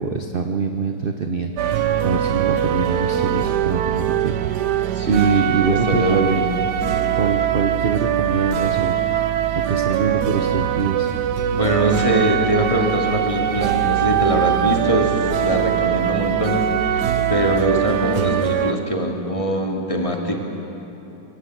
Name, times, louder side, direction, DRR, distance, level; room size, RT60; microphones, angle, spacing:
voice 1, 0.0-6.4 7.2-11.1, right 5 dB, 45° right, 5 dB, 0.8 m, -24 dB
sound 1, 1.6-18.7, right 10 dB, 75° right, 1.3 m, -22 dB
voice 2, 4.9-6.5 11.5-20.4, right 1 dB, 20° left, 0 dB, 2.3 m, -22 dB
24.0 x 18.0 x 7.9 m, 3.0 s
omnidirectional pair, 1.9 m